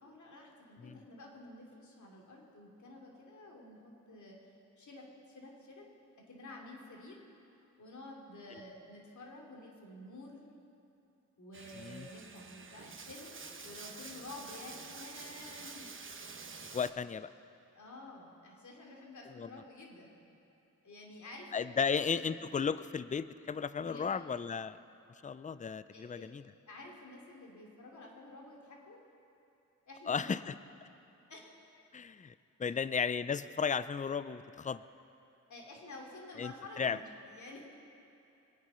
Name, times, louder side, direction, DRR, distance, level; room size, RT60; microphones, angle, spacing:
voice 1, 0.0-4.5 4.8-5.9 6.2-7.2 7.8-10.4 11.4-15.9 17.7-20.2 20.8-22.4 23.8-24.2 25.9-26.3 26.7-29.0 29.9-30.3 31.3-31.4 32.6-32.8 35.5-37.6, left 2 dB, 65° left, -1 dB, 2.9 m, -51 dB
Bathtub (filling or washing), 11.5-16.9, right 4 dB, 40° right, 1.0 m, -48 dB
voice 2, 11.8-12.1 16.7-17.3 19.3-19.5 21.5-24.8 25.2-26.4 30.1-30.5 31.9-32.3 32.6-34.8 36.4-37.0, left 6 dB, 25° left, 15 dB, 0.4 m, -34 dB
23.0 x 8.8 x 5.7 m, 2.8 s
cardioid pair, 70°, 31 cm